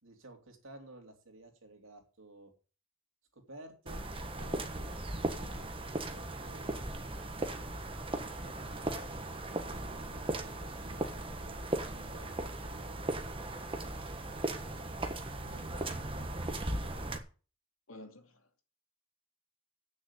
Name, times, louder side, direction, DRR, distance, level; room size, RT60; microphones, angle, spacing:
voice 1, 0.0-2.5 3.3-6.8 8.4-9.1 9.3-10.3 10.8-14.0, right 2 dB, 65° right, 3.0 m, -55 dB
sound 1, 3.9-17.2, right 2 dB, 25° right, 1.4 m, -38 dB
voice 2, 15.4-16.2 16.7-17.1 17.9-18.6, left 1 dB, 70° left, 2.4 m, -55 dB
9.5 x 6.6 x 8.2 m
head